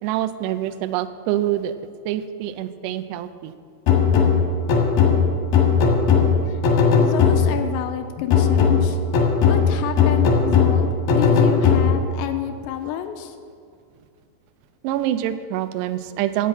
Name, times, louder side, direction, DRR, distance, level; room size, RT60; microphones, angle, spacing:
voice 1, 0.0-1.7 2.1-3.5 14.8-16.5, right 12 dB, 85° right, 11 dB, 2.4 m, -25 dB
sound 1, 3.9-7.7 8.3-12.2, left 5 dB, 65° left, 2.6 m, -18 dB
voice 2, 6.1-6.6 6.9-9.0 9.5-13.4, left 11 dB, 80° left, 7 dB, 2.7 m, -29 dB
12.0 x 5.6 x 8.5 m, 2.3 s
omnidirectional pair, 5.5 m